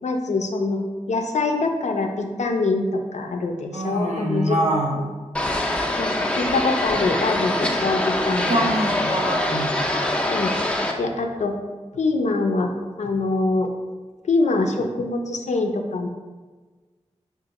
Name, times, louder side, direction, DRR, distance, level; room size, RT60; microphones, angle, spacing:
voice 1, 0.0-4.6 5.0-5.1 6.0-8.6 9.0-9.1 10.3-10.5 11.0-11.5 11.9-12.7 13.0-13.7 14.3-16.1, left 3 dB, 80° left, 4 dB, 0.4 m, -24 dB
voice 2, 3.7-5.0 8.5-9.8, right 1 dB, 75° right, -1 dB, 0.7 m, -24 dB
sound 1, 5.3-10.9, left 1 dB, 10° left, 0.5 m, -24 dB
2.8 x 2.4 x 4.0 m, 1.3 s
cardioid pair, 45°, 12 cm